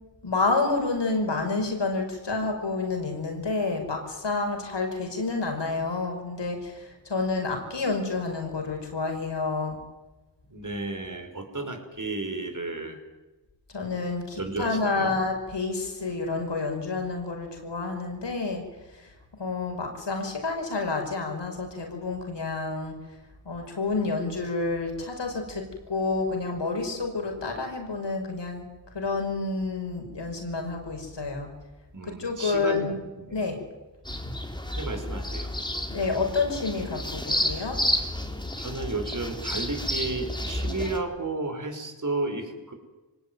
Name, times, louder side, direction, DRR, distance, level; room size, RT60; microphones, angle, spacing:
voice 1, 0.2-9.8 13.7-18.6 18.9-19.1 19.4-22.9 23.4-28.6 28.9-31.5 32.0-33.0 33.3-33.6 35.9-37.8, left 3 dB, 75° left, 3 dB, 5.9 m, -29 dB
voice 2, 10.5-13.0 14.4-15.1 31.9-33.3 34.8-35.5 38.6-42.7, right 2 dB, 45° right, 5 dB, 5.5 m, -33 dB
sound 1, 34.0-41.0, left 1 dB, 10° left, 3.6 m, -31 dB
24.0 x 18.0 x 9.4 m, 1.1 s
cardioid pair, 45°, 43 cm